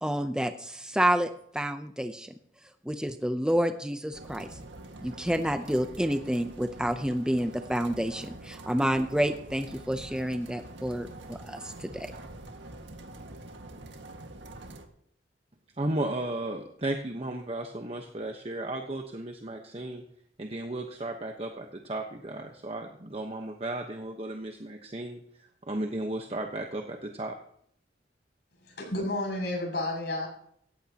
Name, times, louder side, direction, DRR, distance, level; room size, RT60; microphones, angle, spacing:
voice 1, 0.0-2.3 2.9-4.6 5.0-12.1, equal, 5° right, 8 dB, 0.6 m, -29 dB
sound 1, 4.1-14.9, right 2 dB, 85° right, 1.8 m, -45 dB
voice 2, 15.8-20.0 20.4-27.3, right 1 dB, 35° right, 4 dB, 1.1 m, -34 dB
voice 3, 28.6-30.3, left 1 dB, 65° left, 0 dB, 7.2 m, -31 dB
17.5 x 14.5 x 2.9 m, 0.65 s
head